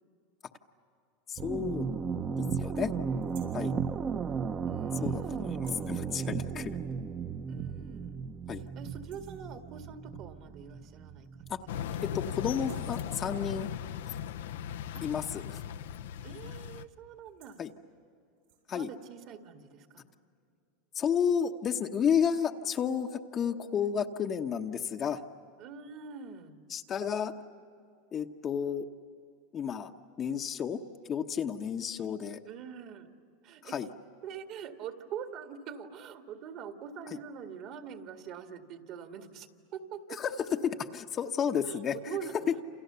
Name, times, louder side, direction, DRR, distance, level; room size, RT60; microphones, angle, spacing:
voice 1, 1.3-1.9 2.4-2.9 3.5-3.7 5.0-6.8 8.5-8.6 11.5-11.6 12.1-13.7 15.0-15.6 17.6-17.7 18.7-18.9 20.9-25.2 26.7-27.3 28.1-28.9 29.5-29.9 30.2-32.4 33.6-33.9 40.2-42.2, left 7 dB, 25° left, 5 dB, 1.0 m, -32 dB
sound 1, 1.4-12.9, right 6 dB, 30° right, 1.0 m, -35 dB
sound 2, 3.2-3.7 5.5-6.0 7.4-7.5 8.0-8.1 8.4-8.7 8.9-9.5 10.9-11.0 11.2-11.9 12.5-13.4 15.8-16.1 16.4-16.7 17.1-17.7 18.4-18.8, right 11 dB, 80° right, 7.9 m, -59 dB
voice 2, 4.7-5.5 7.5-8.2 8.8-11.5 14.9-15.0 16.2-17.6 18.7-20.0 25.6-26.6 32.5-33.1 33.4-33.8 34.2-40.2 41.6-42.3, right 7 dB, 45° right, 5 dB, 2.0 m, -44 dB
sound 3, 11.7-16.9, left 9 dB, 85° left, 0.8 m, -38 dB
28.5 x 28.5 x 6.9 m, 2.4 s
supercardioid pair, 140°, 0 cm